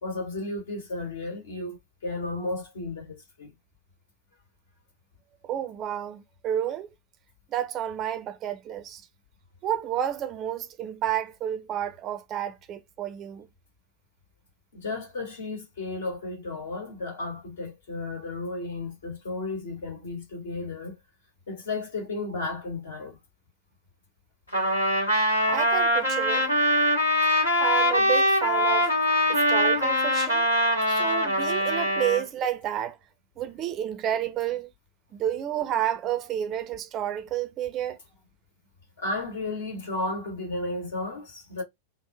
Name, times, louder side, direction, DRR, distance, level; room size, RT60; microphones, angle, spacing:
voice 1, 0.0-3.5 14.7-21.0 21.5-23.2 31.0-31.1 39.0-41.6, left 2 dB, 60° left, 1.8 m, -33 dB
voice 2, 5.4-6.9 7.5-9.0 9.6-13.5 25.5-26.5 27.6-28.9 29.3-30.5 30.9-33.0 33.4-34.7 35.1-38.0, right 10 dB, 30° right, 0.5 m, -30 dB
Trumpet, 24.5-32.2, equal, 80° left, 1.5 m, -23 dB
3.5 x 2.1 x 3.3 m
figure-of-eight pair, 90°, 0 cm